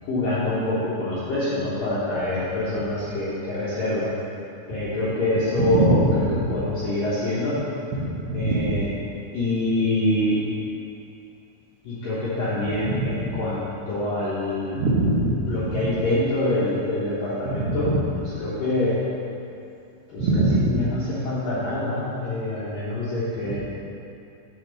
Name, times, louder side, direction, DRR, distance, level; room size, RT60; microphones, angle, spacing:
voice 1, 0.0-4.1 4.7-6.2 6.5-7.6 8.3-8.9 9.3-10.4 11.8-14.9 15.5-17.9 18.2-19.0 20.1-23.6, left 1 dB, 75° left, -10 dB, 2.0 m, -25 dB
voice 2, 5.6-6.0 8.0-8.8 13.0-13.3 14.8-15.4 15.7-15.9 17.5-17.8 20.2-20.8 23.5-23.6, right 2 dB, 90° right, -5 dB, 2.3 m, -22 dB
8.0 x 4.3 x 6.5 m, 2.6 s
omnidirectional pair, 5.8 m